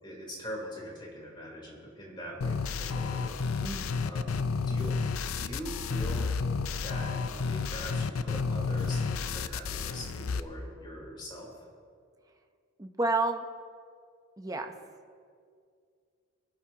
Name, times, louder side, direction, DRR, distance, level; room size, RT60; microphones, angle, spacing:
voice 1, 0.0-4.3 4.7-6.4 6.7-11.7, equal, 20° left, -3 dB, 3.5 m, -43 dB
sound 1, 2.4-10.4, left 4 dB, 75° left, 0.5 m, -31 dB
voice 2, 3.6-4.1 12.8-13.4 14.4-14.7, right 3 dB, 15° right, 4 dB, 0.7 m, -30 dB
23.5 x 11.5 x 2.9 m, 2.2 s
head